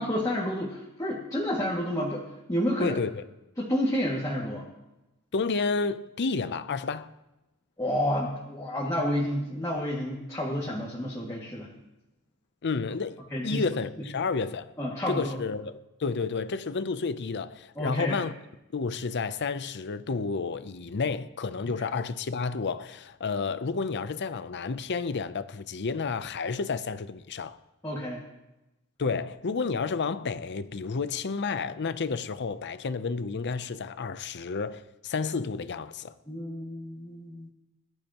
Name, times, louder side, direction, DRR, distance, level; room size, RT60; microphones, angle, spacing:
voice 1, 0.0-3.0 3.6-4.7 7.8-11.7 13.3-13.6 14.8-15.4 17.8-18.2 21.8-21.9 27.8-28.2 36.3-37.5, equal, 15° left, 2.1 m, -30 dB
voice 2, 2.8-3.2 5.3-7.1 12.6-14.7 15.1-18.3 18.7-27.6 29.0-36.1, left 4 dB, 50° left, 0.6 m, -31 dB
21.0 x 12.0 x 3.0 m
head